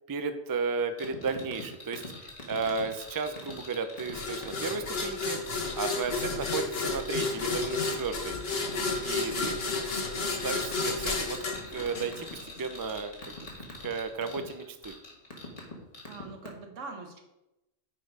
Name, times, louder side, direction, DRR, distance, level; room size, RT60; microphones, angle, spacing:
voice 1, 0.1-5.4 5.7-8.4 9.0-9.8 10.4-11.4 11.7-13.5 13.8-14.9, right 4 dB, 30° right, 8 dB, 0.3 m, -34 dB
sound 1, 1.0-15.7 15.9-16.2, left 2 dB, 90° left, 2.5 m, -47 dB
sound 2, 1.0-1.6 1.9-2.1 2.4-3.0 3.4-3.5 4.0-4.1 4.4-4.8 5.9-6.6 7.2-8.1 8.5-9.8 10.3-11.6 11.9-12.3 12.7-14.4 15.0-15.7 16.0-16.5, left 3 dB, 30° left, 1.5 m, -42 dB
sound 3, 4.1-12.6, left 3 dB, 55° left, 1.4 m, -32 dB
voice 2, 16.1-17.2, right 3 dB, 85° right, 4 dB, 1.5 m, -44 dB
9.1 x 4.6 x 4.8 m, 0.92 s
omnidirectional pair, 1.2 m